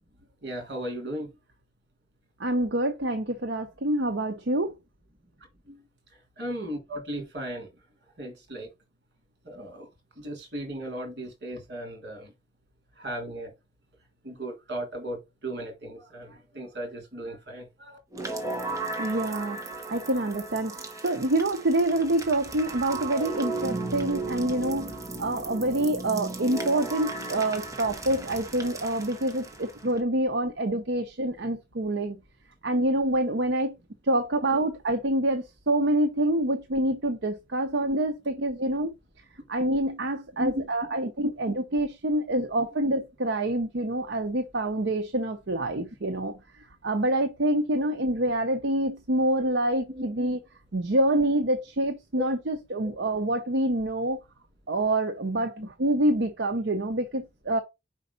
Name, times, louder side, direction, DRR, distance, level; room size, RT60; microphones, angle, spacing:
voice 1, 0.4-1.3 5.7-5.8 6.4-7.7 8.2-8.7 9.4-9.9 10.2-12.3 13.0-13.5 14.2-18.0 25.4-25.5 40.4-40.6 49.9-50.1 52.2-52.3 55.6-55.7, equal, 65° right, 3.3 m, -35 dB
voice 2, 2.4-4.7 19.0-19.6 19.9-32.2 32.6-33.8 34.0-38.9 39.5-46.4 46.8-50.4 50.7-54.2 54.7-57.6, right 1 dB, 80° right, 0.8 m, -26 dB
sound 1, 18.1-30.0, right 2 dB, 20° right, 1.2 m, -35 dB
5.3 x 4.9 x 4.0 m
head